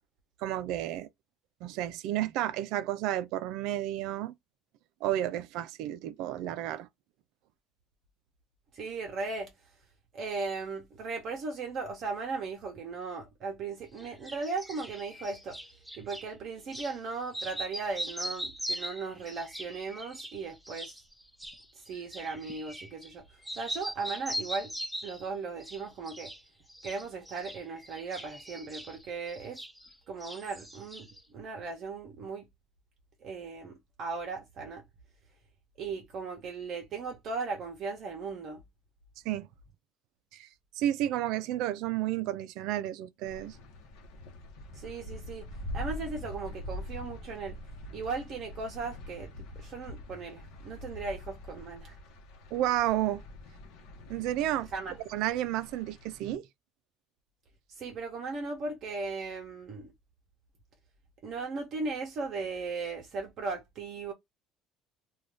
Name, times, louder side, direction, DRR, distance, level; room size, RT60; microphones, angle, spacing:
voice 1, 0.4-1.1 1.6-4.3 5.0-6.9 39.3-39.5 40.3-40.5 40.8-43.6 52.5-53.2 54.1-54.7 55.1-56.5, right 13 dB, 65° right, 0.4 m, -31 dB
voice 2, 8.7-9.5 10.1-15.6 16.0-20.9 21.9-23.2 23.5-24.7 25.0-26.3 26.8-29.6 30.1-31.1 31.3-32.5 33.2-34.8 35.8-38.6 44.7-45.5 45.7-47.6 47.9-49.3 49.6-52.0 54.7-54.9 57.8-59.9 61.2-64.1, right 4 dB, 40° right, 0.7 m, -37 dB
sound 1, 14.0-16.3 16.7-17.0 17.3-23.2 23.4-25.3 25.6-26.4 26.7-30.0 30.2-31.2, equal, ahead, 0.4 m, -41 dB
sound 2, 43.2-56.3, left 1 dB, 70° left, 0.8 m, -44 dB
2.6 x 2.3 x 3.2 m
cardioid pair, 175°, 0 cm